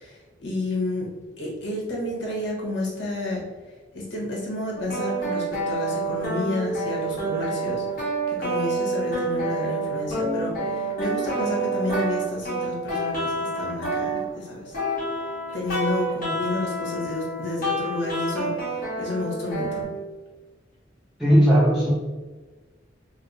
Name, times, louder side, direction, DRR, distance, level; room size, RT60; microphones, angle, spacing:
voice 1, 0.0-3.4 3.9-14.8 15.5-19.9, left 2 dB, 70° left, -3 dB, 1.1 m, -30 dB
sound 1, 4.7-19.8, right 2 dB, 50° left, 1.3 m, -28 dB
voice 2, 21.2-21.9, equal, ahead, -8 dB, 0.5 m, -17 dB
3.2 x 2.0 x 3.9 m, 1.3 s
head